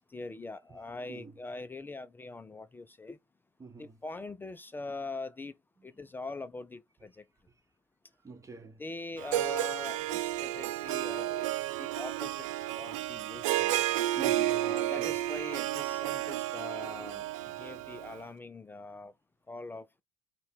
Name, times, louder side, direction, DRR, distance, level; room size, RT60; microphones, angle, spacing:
voice 1, 0.1-3.2 3.8-5.5 5.8-7.2 8.8-12.4 12.8-13.7 14.6-19.1 19.5-19.9, left 3 dB, 10° left, 0.3 m, -42 dB
voice 2, 0.7-1.4 3.6-4.0 5.8-6.1 8.2-8.8 14.1-15.3, right 4 dB, 20° right, 1.0 m, -47 dB
Harp, 9.2-18.2, right 14 dB, 80° right, 0.4 m, -32 dB
5.4 x 2.2 x 3.4 m
supercardioid pair, 105°, 16 cm